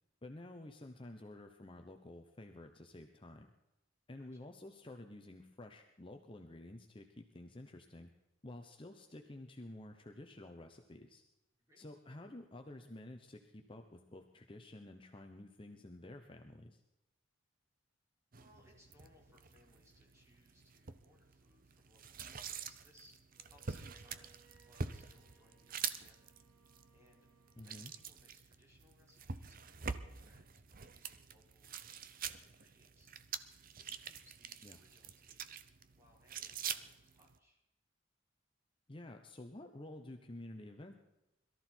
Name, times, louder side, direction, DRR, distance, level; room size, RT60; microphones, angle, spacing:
voice 1, 0.2-3.5 4.1-8.1 8.4-11.2 11.8-16.8 27.6-27.9 34.6-34.8 38.9-40.9, left 1 dB, 25° left, 5 dB, 1.0 m, -51 dB
sound 1, 18.3-37.4, right 6 dB, 45° right, 0.8 m, -46 dB
voice 2, 18.4-24.4 24.6-26.4 26.9-27.3 27.5-33.1 33.8-35.6 35.9-37.6, left 1 dB, 15° right, -2 dB, 4.9 m, -68 dB
Bowed string instrument, 23.3-28.3, right 4 dB, 90° right, 2.8 m, -69 dB
22.5 x 13.5 x 4.5 m, 0.93 s
head